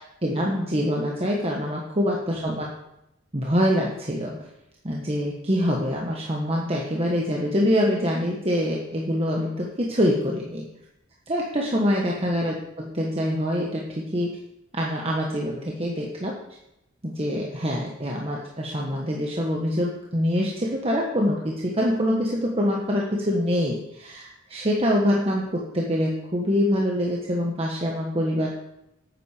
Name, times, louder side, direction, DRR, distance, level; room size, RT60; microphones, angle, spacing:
voice 1, 0.2-2.7 3.3-4.4 4.8-10.7 11.3-14.3 14.7-16.4 17.0-28.5, equal, 30° right, -2 dB, 1.3 m, -25 dB
9.7 x 8.5 x 5.0 m, 0.84 s
head